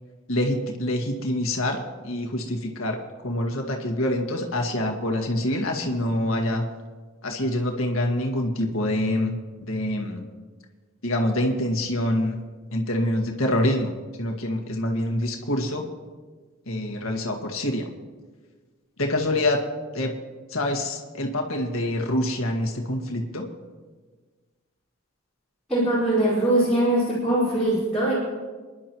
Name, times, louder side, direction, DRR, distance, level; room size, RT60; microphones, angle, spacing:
voice 1, 0.3-3.0 3.2-6.7 7.2-9.4 9.7-10.3 11.0-12.4 12.7-15.8 16.7-17.9 19.0-19.6 19.9-20.1 20.5-23.5, left 1 dB, 85° left, 1 dB, 1.9 m, -26 dB
voice 2, 25.7-28.1, right 1 dB, 5° left, -12 dB, 4.9 m, -22 dB
29.5 x 11.0 x 3.1 m, 1.4 s
head